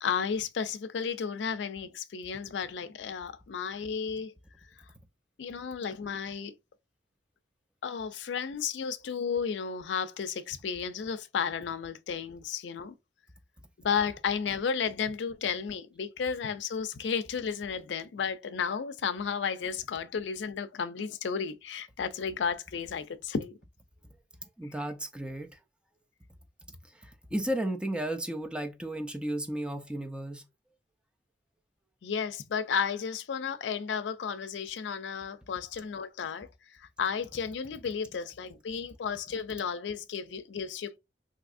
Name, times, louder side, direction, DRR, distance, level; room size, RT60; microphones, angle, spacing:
voice 1, 0.0-4.3 5.4-6.5 7.8-12.9 13.8-23.5 32.0-36.5 36.8-41.0, left 6 dB, 90° left, 0.4 m, -33 dB
voice 2, 24.6-25.6 26.7-30.4, right 1 dB, 5° right, 0.3 m, -34 dB
3.4 x 2.7 x 2.4 m
head